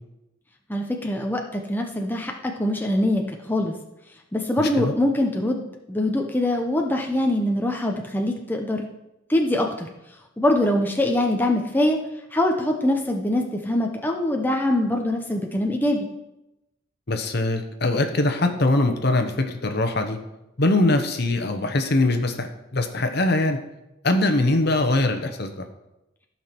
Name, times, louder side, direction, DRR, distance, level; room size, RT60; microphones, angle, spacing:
voice 1, 0.7-3.7 4.3-5.6 5.9-8.9 9.3-9.9 10.4-12.0 12.3-16.1, left 1 dB, 10° left, 1 dB, 0.8 m, -23 dB
voice 2, 4.6-4.9 17.1-20.2 20.6-23.6 24.0-25.7, left 2 dB, 50° left, 6 dB, 1.1 m, -22 dB
14.5 x 5.8 x 4.5 m, 0.91 s
head